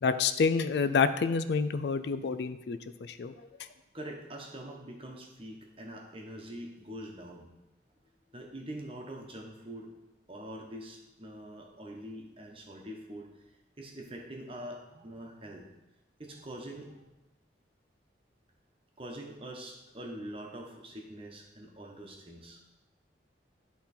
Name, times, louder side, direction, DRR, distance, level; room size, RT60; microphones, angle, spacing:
voice 1, 0.0-3.3, left 5 dB, 65° left, 11 dB, 0.4 m, -28 dB
voice 2, 3.9-7.5 8.3-9.9 10.3-13.3 13.8-15.6 16.2-17.0 19.0-22.6, right 1 dB, 30° right, 1 dB, 1.1 m, -44 dB
11.5 x 3.9 x 4.3 m, 1.0 s
head